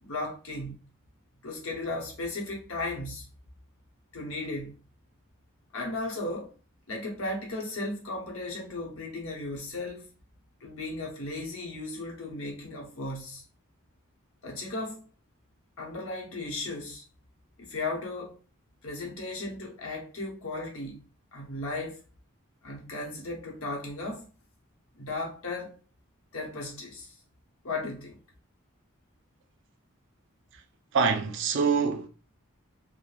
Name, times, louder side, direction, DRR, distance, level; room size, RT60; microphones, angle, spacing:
voice 1, 0.0-0.8 1.4-3.3 4.1-4.8 5.7-6.5 6.9-10.1 10.6-13.4 14.4-15.0 15.8-17.0 17.6-18.4 18.8-21.0 21.3-22.0 22.6-24.3 24.9-25.8 26.3-27.1 27.6-28.2, left 2 dB, 75° left, 0.8 m, -35 dB
voice 2, 30.9-32.1, right 5 dB, 60° right, 0.4 m, -25 dB
3.1 x 2.1 x 2.3 m
head